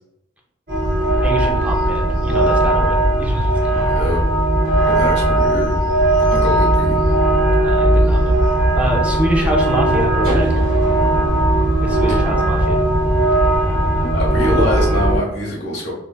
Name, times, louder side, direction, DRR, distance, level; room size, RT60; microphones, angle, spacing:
sound 1, 0.7-15.2, right 1 dB, 45° right, 0.9 m, -17 dB
voice 1, 1.2-4.0 7.6-8.4 8.8-10.5 11.8-12.8, right 1 dB, 5° right, -1 dB, 0.4 m, -25 dB
voice 2, 4.9-5.7 6.3-7.0 14.1-15.9, left 1 dB, 60° left, -3 dB, 1.1 m, -23 dB
3.2 x 2.3 x 2.3 m, 0.85 s
head